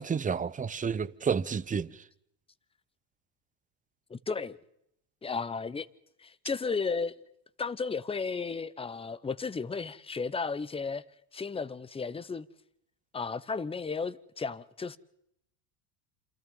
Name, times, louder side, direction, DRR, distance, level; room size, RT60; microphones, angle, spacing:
voice 1, 0.0-2.1, right 6 dB, 15° right, 0.8 m, -30 dB
voice 2, 4.1-4.6 5.2-5.9 6.2-7.2 7.6-11.0 11.3-12.5 13.1-15.0, left 4 dB, 10° left, 0.9 m, -34 dB
28.0 x 28.0 x 3.9 m
supercardioid pair, 100°, 46 cm